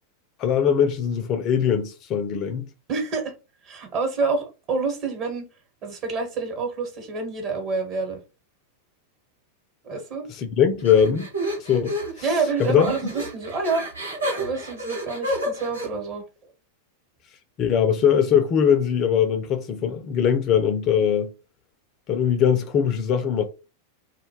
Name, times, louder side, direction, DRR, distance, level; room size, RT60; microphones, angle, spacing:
voice 1, 0.4-2.7 10.3-11.3 11.6-12.3 12.6-12.9 17.6-21.3 22.1-23.4, left 8 dB, 35° left, 0.3 m, -21 dB
voice 2, 2.9-3.3 3.6-5.4 5.8-8.2 9.8-10.3 12.2-13.8 14.4-16.2, right 4 dB, 40° right, 1.0 m, -27 dB
sound 1, 10.8-15.9, equal, 80° right, 1.0 m, -30 dB
2.2 x 2.1 x 3.1 m
figure-of-eight pair, 90°, 0 cm